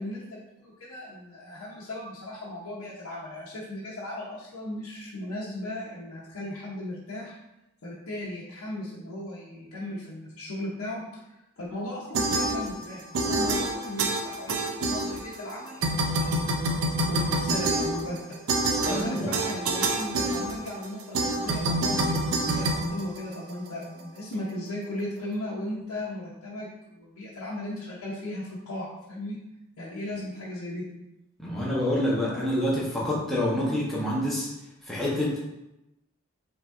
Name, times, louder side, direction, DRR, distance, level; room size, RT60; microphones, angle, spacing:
voice 1, 0.0-7.4 7.8-11.0 11.3-16.6 17.0-18.4 18.8-29.4 29.8-30.8, left 1 dB, 80° left, -7 dB, 0.8 m, -37 dB
sound 1, 12.1-12.9 13.1-15.5 15.8-23.7, right 2 dB, 80° right, 0.5 m, -27 dB
voice 2, 18.8-19.4 31.4-34.5 34.9-35.4, left 1 dB, ahead, -6 dB, 0.8 m, -27 dB
5.2 x 3.0 x 2.5 m, 0.90 s
head